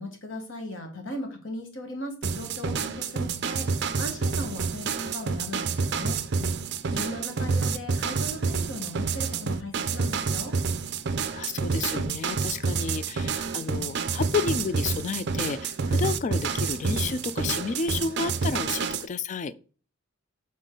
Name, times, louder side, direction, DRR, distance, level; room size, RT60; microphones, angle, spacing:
voice 1, 0.0-6.2 6.9-10.6, left 1 dB, 65° left, 1.5 m, -38 dB
sound 1, 2.2-19.1, right 5 dB, 60° right, 0.5 m, -28 dB
voice 2, 11.3-19.5, left 5 dB, 35° left, 0.3 m, -31 dB
6.5 x 4.1 x 3.8 m
head